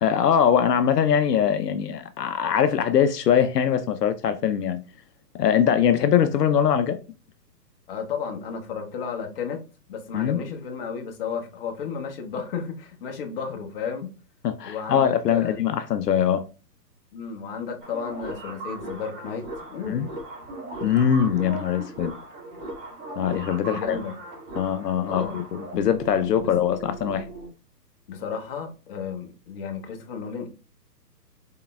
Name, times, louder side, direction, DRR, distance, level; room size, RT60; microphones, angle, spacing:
voice 1, 0.0-4.8 5.3-7.0 10.1-10.4 14.4-16.4 19.9-20.1 20.8-22.1 23.2-24.0 24.6-27.3, left 8 dB, 75° left, 0.6 m, -22 dB
voice 2, 7.9-9.6 9.9-14.1 14.6-15.6 17.1-20.0 23.6-24.1 25.1-25.4 26.4-26.5 28.1-30.5, left 6 dB, 35° left, 0.9 m, -33 dB
sound 1, 17.8-27.5, right 2 dB, 35° right, 2.2 m, -38 dB
4.3 x 3.7 x 2.3 m
hypercardioid pair, 135°, 49 cm